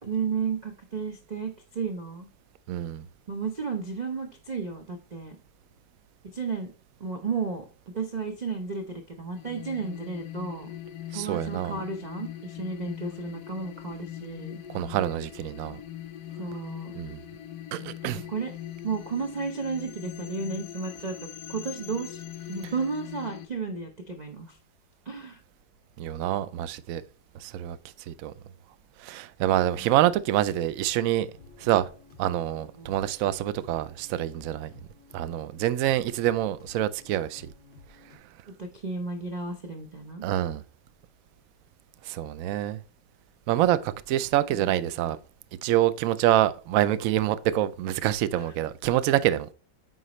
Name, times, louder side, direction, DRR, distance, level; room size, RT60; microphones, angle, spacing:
voice 1, 0.0-2.3 3.3-5.4 6.3-6.7 7.0-7.6 7.9-10.7 11.1-14.6 16.4-17.0 18.0-18.5 18.8-21.2 21.5-24.6 25.0-25.4 29.8-29.9 32.8-32.9 38.5-40.3 48.4-48.5, right 4 dB, 45° right, 0.5 m, -33 dB
voice 2, 2.7-3.1 11.1-11.8 14.7-15.8 17.0-17.2 17.7-18.2 26.0-27.0 27.3-27.8 28.1-28.3 29.0-31.3 31.6-31.9 32.2-34.7 35.1-37.5 40.2-40.6 42.0-42.8 43.5-45.2 45.6-49.5, right 13 dB, 75° right, 0.8 m, -26 dB
sound 1, 9.3-23.5, left 11 dB, 70° left, 1.2 m, -41 dB
sound 2, 31.3-38.2, left 3 dB, 35° left, 1.9 m, -54 dB
9.1 x 4.0 x 3.1 m
omnidirectional pair, 1.9 m